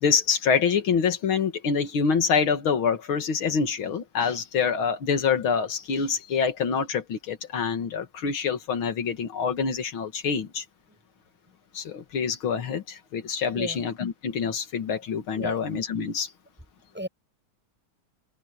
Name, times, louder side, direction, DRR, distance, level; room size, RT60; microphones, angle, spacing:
voice 1, 0.0-10.6 11.7-16.3, left 6 dB, 75° left, 2.6 m, -26 dB
voice 2, 13.5-13.8 15.4-15.6 16.9-17.1, equal, 5° right, 7.7 m, -34 dB
open air
omnidirectional pair, 2.3 m